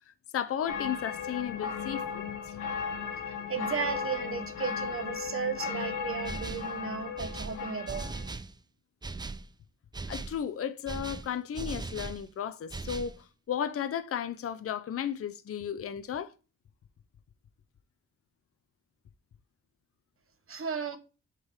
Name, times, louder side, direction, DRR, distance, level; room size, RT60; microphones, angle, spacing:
voice 1, 0.3-2.6 10.1-16.3, left 9 dB, 50° left, 0.6 m, -34 dB
sound 1, 0.7-8.3, left 6 dB, 90° left, 1.2 m, -36 dB
voice 2, 3.3-8.0 20.5-21.0, right 6 dB, 45° right, 1.1 m, -35 dB
sound 2, 6.2-6.7 7.2-8.5 9.0-9.5 9.9-10.4 10.9-12.2 12.7-13.2, right 3 dB, 15° right, 0.4 m, -39 dB
7.6 x 3.8 x 4.3 m
cardioid pair, 55°, 30 cm